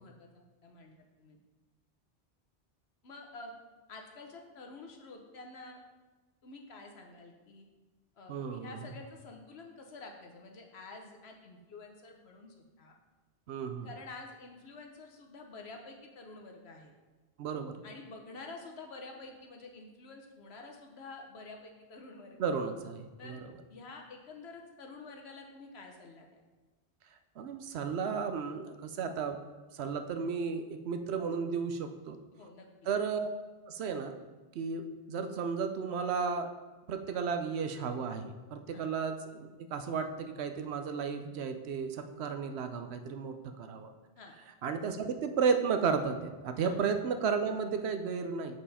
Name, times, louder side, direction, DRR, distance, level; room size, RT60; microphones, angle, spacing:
voice 1, 0.0-1.4 3.0-3.5 3.9-5.8 6.4-7.6 8.2-12.9 13.8-16.9 17.8-22.4 23.2-23.4 23.7-26.4 32.4-32.7 38.7-38.8 44.2-44.3 46.6-46.8, left 3 dB, 70° left, 2 dB, 1.2 m, -49 dB
voice 2, 8.3-8.8 13.5-13.9 17.4-17.8 22.4-23.4 27.4-29.4 29.7-32.2 32.9-33.3 33.7-34.1 34.5-34.8 35.1-36.5 36.9-43.9 44.6-48.6, right 5 dB, 75° right, 7 dB, 0.9 m, -33 dB
7.7 x 4.8 x 4.1 m, 1.2 s
omnidirectional pair, 1.1 m